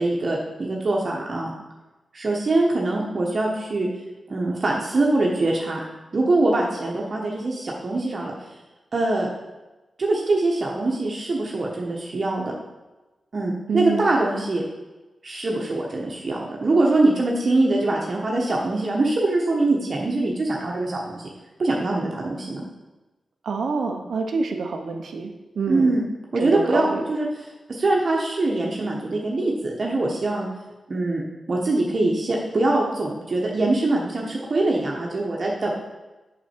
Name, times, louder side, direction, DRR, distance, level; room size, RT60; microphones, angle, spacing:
voice 1, 0.0-1.5 2.1-3.9 4.3-5.8 6.1-8.3 8.9-9.3 10.0-12.5 13.3-14.6 15.2-21.3 21.6-22.6 25.7-26.0 26.3-27.3 27.7-30.5 30.9-31.2 31.5-35.7, right 2 dB, 50° right, -2 dB, 1.2 m, -23 dB
voice 2, 13.7-14.1 23.4-25.9 26.4-27.0, right 4 dB, 80° right, 5 dB, 0.8 m, -27 dB
6.1 x 6.0 x 4.5 m, 1.1 s
cardioid pair, 70°, 0 cm